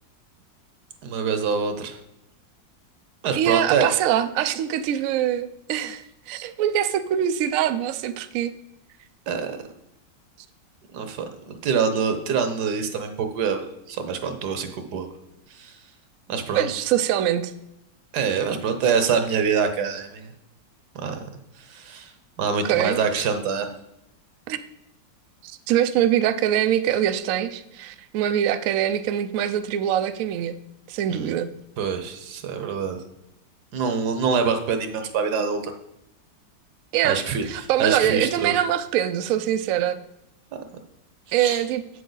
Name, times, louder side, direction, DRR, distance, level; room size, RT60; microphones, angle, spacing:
voice 1, 1.0-2.0 3.2-3.9 9.3-9.6 10.9-15.1 15.5-15.8 16.3-16.7 18.1-20.3 20.9-21.2 21.6-22.1 22.4-23.7 31.1-31.3 31.8-33.0 33.7-35.7 37.0-38.5 41.3-41.6, right 6 dB, 65° right, 7 dB, 1.2 m, -25 dB
voice 2, 3.4-8.5 16.5-17.5 22.6-23.0 24.5-24.6 25.7-30.6 30.9-31.5 36.9-37.2 37.4-40.0 41.3-41.8, right 11 dB, 85° right, 10 dB, 0.7 m, -23 dB
8.2 x 6.3 x 3.9 m, 0.84 s
omnidirectional pair, 2.0 m